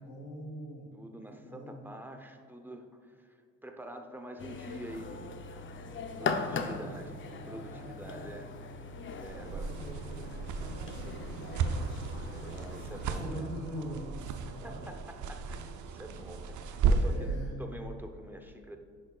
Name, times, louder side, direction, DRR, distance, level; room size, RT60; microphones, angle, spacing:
voice 1, 0.0-0.9 1.3-1.9 6.1-6.9 7.4-8.4 9.3-14.8 17.0-17.5, equal, 80° left, -6 dB, 1.7 m, -44 dB
voice 2, 0.9-5.4 6.2-8.5 9.2-9.7 12.4-13.5 14.5-18.8, right 1 dB, 5° right, 5 dB, 0.7 m, -46 dB
sound 1, 4.4-13.2, left 4 dB, 40° left, 0.6 m, -40 dB
sound 2, 9.2-17.3, right 4 dB, 75° right, 0.6 m, -34 dB
10.0 x 6.5 x 2.3 m, 2.1 s
cardioid pair, 90°, 30 cm